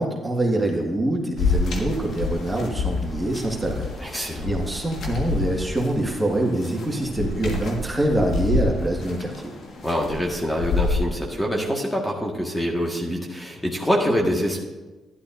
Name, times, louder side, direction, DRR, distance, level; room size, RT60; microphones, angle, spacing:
voice 1, 0.0-9.5, right 1 dB, 20° right, 0 dB, 1.9 m, -25 dB
sound 1, 1.4-11.0, left 3 dB, 65° left, 1.7 m, -28 dB
voice 2, 4.0-4.5 9.8-14.6, equal, 10° left, -1 dB, 1.7 m, -25 dB
11.5 x 11.0 x 2.6 m, 1.2 s
supercardioid pair, 60°, 0 cm